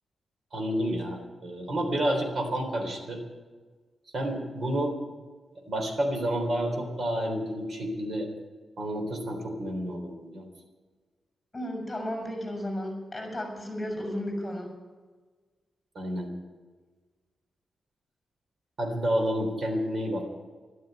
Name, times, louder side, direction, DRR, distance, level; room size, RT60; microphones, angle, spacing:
voice 1, 0.5-3.2 4.1-5.0 5.6-8.3 8.8-10.5 16.0-16.3 18.8-20.2, equal, 55° right, 2 dB, 3.6 m, -30 dB
voice 2, 11.5-14.7, left 1 dB, 15° left, 2 dB, 6.2 m, -34 dB
12.5 x 12.5 x 8.9 m, 1.4 s
wide cardioid pair, 125°, 0 cm